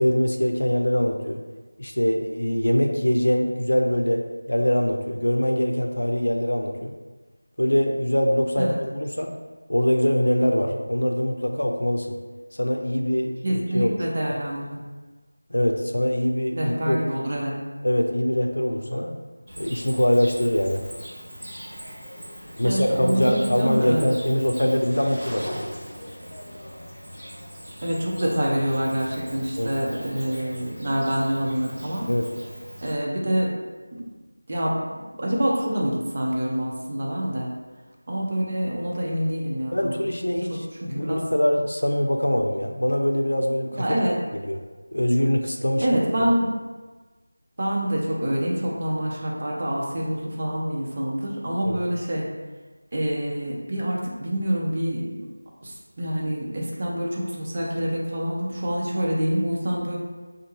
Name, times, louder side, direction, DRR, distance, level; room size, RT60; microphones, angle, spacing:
voice 1, 0.0-1.4 1.8-6.9 7.6-9.3 9.7-12.2 12.6-13.9 15.5-17.0 17.8-19.2 19.6-20.8 22.6-25.6 29.6-29.7 32.1-32.3 39.7-40.6 40.9-44.0 44.3-44.6 44.9-45.9 51.6-51.8, equal, 75° left, 3 dB, 0.5 m, -23 dB
voice 2, 13.4-14.6 16.6-17.5 22.6-24.1 27.8-32.1 32.8-33.5 34.0-34.1 34.5-34.8 35.2-37.5 38.1-40.1 40.5-41.2 43.7-44.2 45.8-46.5 47.6-52.3 52.9-55.2 55.6-60.0, equal, 30° right, -3 dB, 0.6 m, -26 dB
Cricket, 19.5-32.9, equal, ahead, 1.1 m, -40 dB
5.4 x 2.2 x 3.1 m, 1.3 s
figure-of-eight pair, 170°, 0 cm